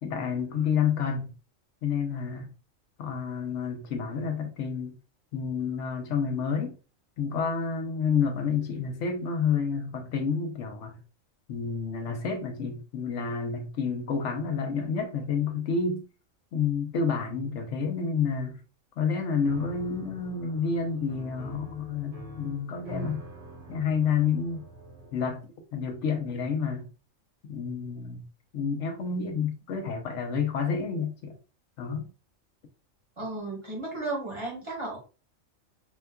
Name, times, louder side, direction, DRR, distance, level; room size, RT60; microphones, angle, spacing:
voice 1, 0.0-1.3 1.8-2.5 3.0-5.0 5.3-6.8 7.2-11.0 11.5-16.0 16.5-18.6 19.0-23.2 23.7-24.6 25.1-25.4 25.7-26.8 27.5-28.2 28.5-31.3 31.8-32.1, left 6 dB, 70° left, 1.0 m, -29 dB
Piano, 19.4-25.3, left 1 dB, 55° right, 1.2 m, -43 dB
voice 2, 33.2-35.0, right 2 dB, 25° right, 1.1 m, -34 dB
4.4 x 2.3 x 2.2 m
omnidirectional pair, 1.4 m